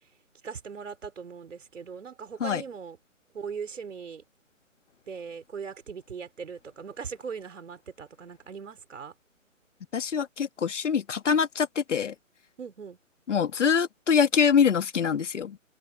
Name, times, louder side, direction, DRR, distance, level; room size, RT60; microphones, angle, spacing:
voice 1, 0.4-3.0 3.3-4.2 5.1-9.1 12.6-13.0, right 6 dB, 65° right, 4.6 m, -39 dB
voice 2, 9.9-12.1 13.3-15.6, left 7 dB, 65° left, 2.0 m, -24 dB
hypercardioid pair, 155°, 40 cm